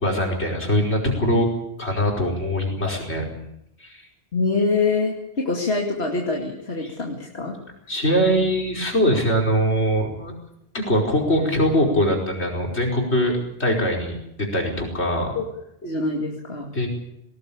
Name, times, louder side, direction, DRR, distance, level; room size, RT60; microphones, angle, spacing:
voice 1, 0.0-1.5 1.8-3.3 3.8-4.0 6.8-6.9 7.9-10.3 10.7-15.3 16.7-16.9, equal, 90° left, 0 dB, 5.5 m, -22 dB
voice 2, 4.3-7.6 15.4-15.5 15.8-16.7, left 3 dB, 70° left, 0 dB, 2.7 m, -24 dB
19.5 x 19.0 x 8.8 m, 0.80 s
omnidirectional pair, 1.1 m